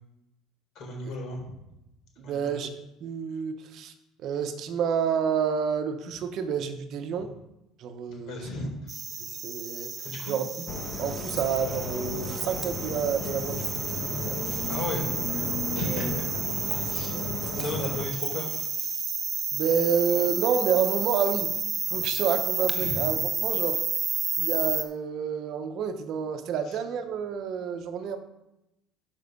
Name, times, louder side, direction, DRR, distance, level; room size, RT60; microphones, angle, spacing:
voice 1, 0.8-1.5 2.2-2.5 7.1-7.3 8.1-9.0 10.0-10.4 14.7-15.0 15.7-16.3 16.9-17.2 17.6-18.5 21.9-22.0 22.7-23.0 26.7-26.8, left 2 dB, 55° left, 0 dB, 3.9 m, -35 dB
voice 2, 2.2-3.9 4.2-7.3 7.8-8.5 9.2-9.9 10.3-10.7 11.0-13.6 14.2-14.5 15.8-16.2 17.1-17.3 17.6-17.9 19.5-21.5 21.9-23.8 24.4-28.2, right 7 dB, 50° right, 8 dB, 1.0 m, -29 dB
sound 1, 8.9-24.8, right 5 dB, 25° right, 0.9 m, -31 dB
sound 2, 10.7-18.1, left 3 dB, 35° left, 1.3 m, -34 dB
12.0 x 5.5 x 5.3 m, 0.91 s
cardioid pair, 145°, 0 cm